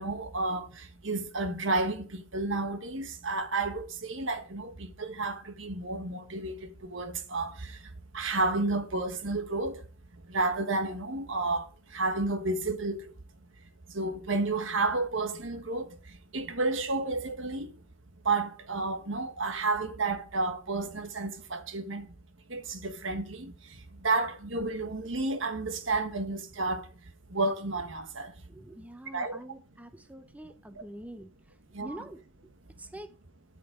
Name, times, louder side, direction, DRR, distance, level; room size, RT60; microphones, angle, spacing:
voice 1, 0.0-7.8 8.1-9.8 10.3-11.7 11.9-13.0 13.9-15.9 16.3-17.7 18.2-22.1 22.5-23.5 24.0-26.8 27.3-28.3 29.1-29.4 31.7-32.0, right 3 dB, 65° right, 1.5 m, -31 dB
voice 2, 28.5-31.3 31.8-32.2 32.8-33.1, right 1 dB, 5° right, 0.6 m, -45 dB
12.5 x 5.9 x 4.9 m
head